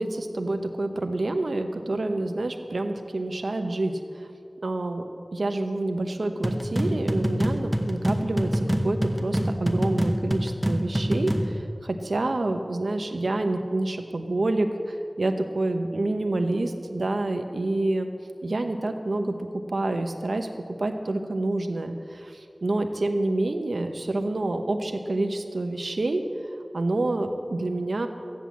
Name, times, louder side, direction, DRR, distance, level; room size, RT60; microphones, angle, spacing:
voice 1, 0.0-3.9 4.6-5.0 5.3-18.1 18.4-19.3 19.7-22.3 22.6-26.2 26.7-28.1, right 2 dB, 90° right, 6 dB, 1.0 m, -27 dB
sound 1, 6.4-11.5, equal, 15° right, 1.1 m, -26 dB
14.0 x 10.0 x 7.3 m, 2.5 s
wide cardioid pair, 45°, 0 cm